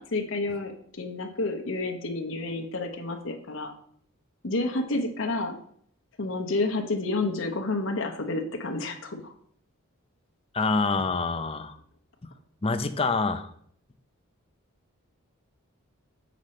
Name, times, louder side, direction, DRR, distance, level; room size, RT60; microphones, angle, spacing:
voice 1, 0.0-3.7 4.4-5.6 6.2-9.3, left 2 dB, 60° left, 3 dB, 0.9 m, -30 dB
voice 2, 10.5-11.8 12.6-13.5, left 3 dB, 25° left, 9 dB, 0.6 m, -26 dB
8.0 x 5.1 x 4.3 m, 0.64 s
head